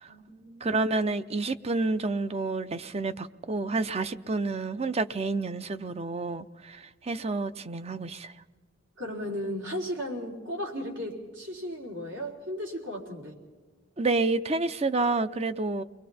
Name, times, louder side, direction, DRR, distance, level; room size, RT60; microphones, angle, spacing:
voice 1, 0.1-0.8 9.0-13.4, equal, 80° right, 4.2 m, -35 dB
voice 2, 0.6-8.3 14.0-15.8, right 3 dB, 30° right, 0.6 m, -29 dB
30.0 x 22.5 x 4.3 m
head